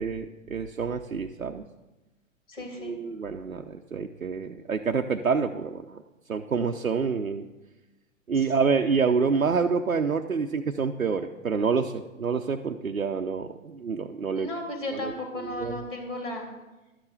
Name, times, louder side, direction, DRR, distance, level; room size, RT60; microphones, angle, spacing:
voice 1, 0.0-1.6 2.8-6.0 6.3-7.4 8.3-14.5 15.0-15.1 15.4-15.8, right 5 dB, 85° right, 4 dB, 0.7 m, -27 dB
voice 2, 2.5-2.9 8.3-8.5 14.3-16.5, left 1 dB, 65° left, 1 dB, 3.1 m, -35 dB
12.0 x 7.5 x 6.4 m, 1.1 s
figure-of-eight pair, 115°, 40 cm